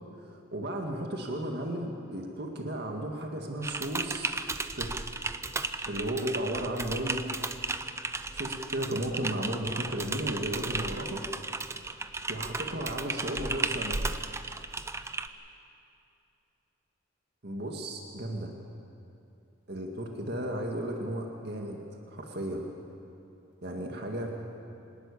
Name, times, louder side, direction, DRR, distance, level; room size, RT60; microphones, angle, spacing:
voice 1, 0.1-4.4 4.7-4.9 5.9-7.5 8.3-11.2 12.3-14.2 17.4-18.5 19.7-21.8 22.1-22.7 23.6-24.4, right 1 dB, 50° right, 1 dB, 2.0 m, -34 dB
Typing, 3.6-15.3, right 3 dB, 15° right, 0.5 m, -35 dB
26.0 x 12.5 x 9.9 m, 2.7 s
head